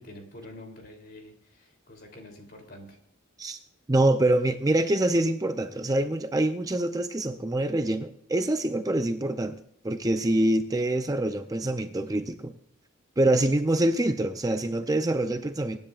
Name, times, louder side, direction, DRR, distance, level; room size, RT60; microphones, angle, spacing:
voice 1, 0.0-3.0, left 1 dB, 50° left, 3 dB, 3.1 m, -47 dB
voice 2, 3.9-9.6 9.8-12.5 13.2-15.8, right 1 dB, 15° right, 8 dB, 0.5 m, -25 dB
23.5 x 10.5 x 2.4 m, 0.69 s
head